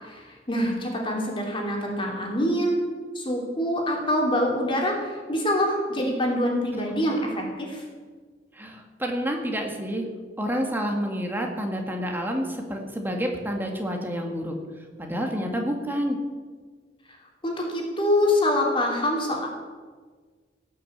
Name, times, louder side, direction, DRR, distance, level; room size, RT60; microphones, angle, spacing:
voice 1, 0.0-2.8 3.1-7.8 17.4-19.5, left 1 dB, 30° left, -1 dB, 3.1 m, -25 dB
voice 2, 8.5-10.1 10.4-14.6 15.0-16.2, equal, 10° right, 2 dB, 1.9 m, -29 dB
18.5 x 6.8 x 8.0 m, 1.5 s
head